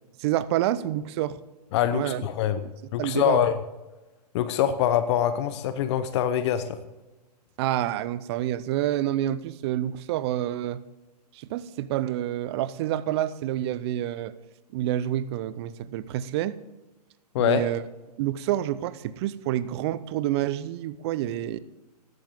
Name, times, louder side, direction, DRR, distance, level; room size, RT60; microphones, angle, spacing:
voice 1, 0.2-1.4 1.9-2.3 2.6-2.7 3.0-3.4 7.6-10.8 11.3-14.3 14.7-16.6 17.4-17.8 18.2-21.6, right 13 dB, 40° right, 17 dB, 0.7 m, -28 dB
voice 2, 1.7-2.6 2.9-3.6 4.3-6.8 17.3-17.7, left 10 dB, 40° left, 12 dB, 0.8 m, -24 dB
14.5 x 12.0 x 3.6 m, 1.1 s
figure-of-eight pair, 115°, 21 cm